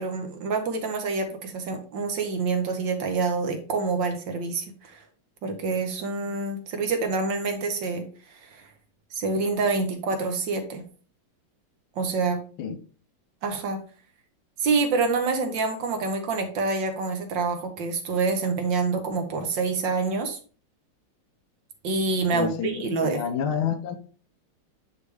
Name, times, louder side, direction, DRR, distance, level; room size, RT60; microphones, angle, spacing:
voice 1, 0.0-5.0 5.4-8.0 8.4-8.7 9.1-10.8 12.0-12.4 13.4-13.8 14.6-20.4 21.8-23.2, right 4 dB, 65° right, 1.6 m, -27 dB
voice 2, 22.3-22.7 23.0-24.0, left 7 dB, 75° left, 1.5 m, -28 dB
9.6 x 3.2 x 3.4 m
omnidirectional pair, 2.4 m